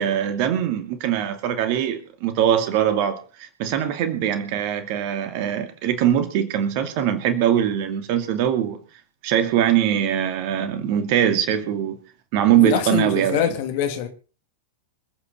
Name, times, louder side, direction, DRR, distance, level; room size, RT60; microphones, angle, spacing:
voice 1, 0.0-8.8 9.2-12.0 12.3-13.4, right 10 dB, 45° right, 2.7 m, -22 dB
voice 2, 12.6-14.1, left 9 dB, 50° left, 2.8 m, -24 dB
26.5 x 9.1 x 4.2 m
figure-of-eight pair, 90°, 0 cm